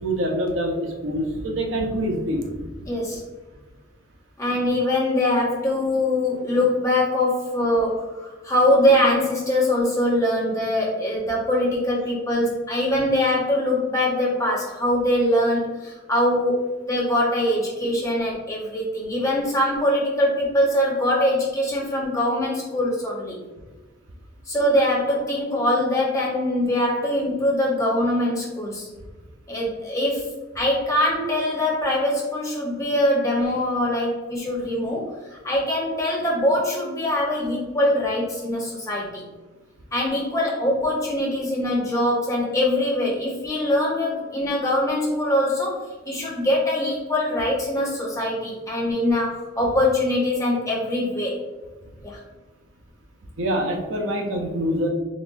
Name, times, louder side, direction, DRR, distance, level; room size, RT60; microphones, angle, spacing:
voice 1, 0.0-2.5 53.4-54.9, equal, 85° right, 1 dB, 0.8 m, -25 dB
voice 2, 2.8-3.2 4.4-16.6 16.9-23.4 24.5-28.9 29.5-30.3 30.5-39.3 39.9-45.8 46.1-51.4 52.0-52.2, left 1 dB, 15° left, -4 dB, 1.0 m, -23 dB
4.1 x 3.4 x 2.7 m, 1.2 s
head